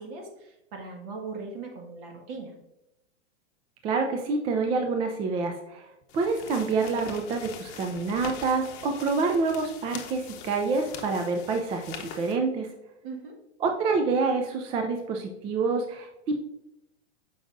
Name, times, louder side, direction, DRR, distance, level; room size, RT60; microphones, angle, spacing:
voice 1, 0.0-2.5 13.0-13.4, right 4 dB, 50° right, 2 dB, 1.8 m, -39 dB
voice 2, 3.8-5.9 6.1-12.7 13.6-16.4, right 4 dB, 15° right, 4 dB, 0.3 m, -27 dB
sound 1, 6.1-12.4, left 7 dB, 40° left, 0.9 m, -43 dB
7.4 x 5.3 x 2.5 m, 0.90 s
hypercardioid pair, 115°, 35 cm